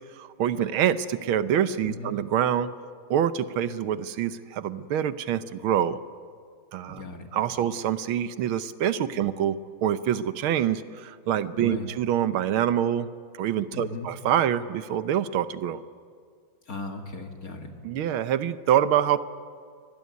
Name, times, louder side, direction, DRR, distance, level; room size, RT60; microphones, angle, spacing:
voice 1, 0.2-2.7 3.1-6.0 6.7-7.0 7.3-13.1 13.4-15.8 17.8-19.2, right 10 dB, 85° right, 13 dB, 1.7 m, -26 dB
voice 2, 1.8-2.1 6.9-7.3 7.6-7.7 9.1-9.2 11.5-11.9 13.7-14.1 16.7-17.7, left 3 dB, 45° left, 4 dB, 2.3 m, -37 dB
23.5 x 20.0 x 9.5 m, 2.1 s
omnidirectional pair, 2.2 m